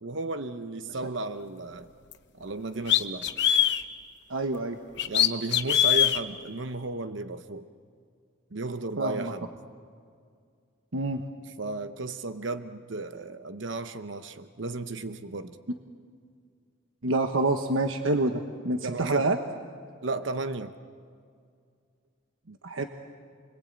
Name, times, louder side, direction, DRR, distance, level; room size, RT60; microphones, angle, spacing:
voice 1, 0.0-1.9 2.3-3.3 5.1-7.6 8.5-9.5 11.5-15.6 18.8-19.3 20.0-20.7, right 3 dB, 65° right, 10 dB, 0.9 m, -34 dB
sound 1, 2.1-2.2 2.9-3.8 5.0-6.2, left 11 dB, 60° left, 1.1 m, -22 dB
voice 2, 4.3-4.8 9.0-9.3 10.9-11.2 17.0-19.4 22.5-22.8, right 2 dB, 85° right, 6 dB, 1.2 m, -27 dB
29.5 x 22.5 x 8.9 m, 2.2 s
head